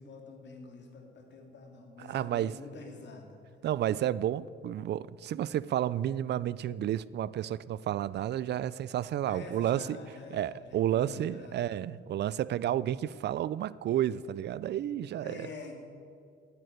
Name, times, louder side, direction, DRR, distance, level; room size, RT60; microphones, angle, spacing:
voice 1, 0.0-3.6 9.3-11.7 15.2-15.7, left 3 dB, 65° left, 3 dB, 2.6 m, -47 dB
voice 2, 2.0-2.6 3.6-10.0 10.3-15.5, right 11 dB, 60° right, 19 dB, 0.4 m, -31 dB
10.5 x 8.8 x 9.2 m, 2.3 s
cardioid pair, 90°, 20 cm